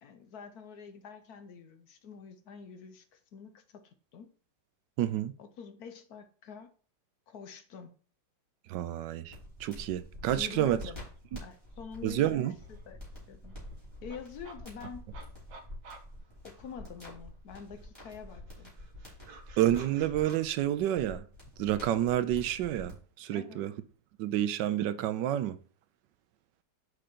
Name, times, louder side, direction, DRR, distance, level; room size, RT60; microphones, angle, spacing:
voice 1, 0.0-4.3 5.4-6.7 7.3-7.9 10.3-11.1 11.4-13.0 13.3-13.6 14.0-15.0 16.4-18.7 23.3-23.6, left 6 dB, 65° left, 1.2 m, -46 dB
voice 2, 5.0-5.3 8.7-10.8 12.0-12.5 19.6-21.3 21.6-23.7 24.2-25.6, right 12 dB, 80° right, 1.2 m, -29 dB
sound 1, 9.3-22.9, left 1 dB, 15° left, 3.2 m, -47 dB
sound 2, 12.6-17.2 17.5-20.4, right 4 dB, 60° right, 1.4 m, -54 dB
6.5 x 4.9 x 4.3 m
omnidirectional pair, 1.9 m